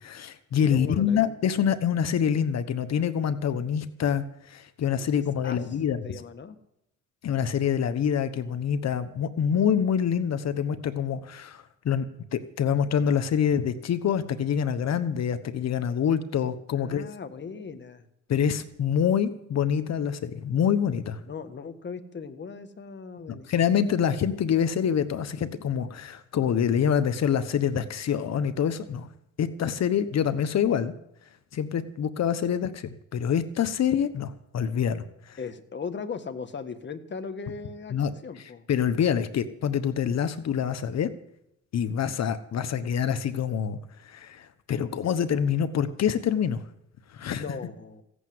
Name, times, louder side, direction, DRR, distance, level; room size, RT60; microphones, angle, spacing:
voice 1, 0.0-6.0 7.2-12.1 12.3-17.1 18.3-21.2 23.5-29.1 29.4-30.9 31.5-35.4 37.9-38.1 38.7-41.1 41.7-43.8 44.0-46.6 47.1-47.4, left 8 dB, 60° left, 11 dB, 1.2 m, -26 dB
voice 2, 0.7-1.2 5.0-5.6 6.0-6.6 16.8-18.0 21.2-23.5 35.4-38.0 38.2-38.6 47.3-48.0, left 5 dB, 35° left, 8 dB, 1.6 m, -38 dB
16.0 x 8.3 x 9.4 m, 0.80 s
cardioid pair, 90°, 30 cm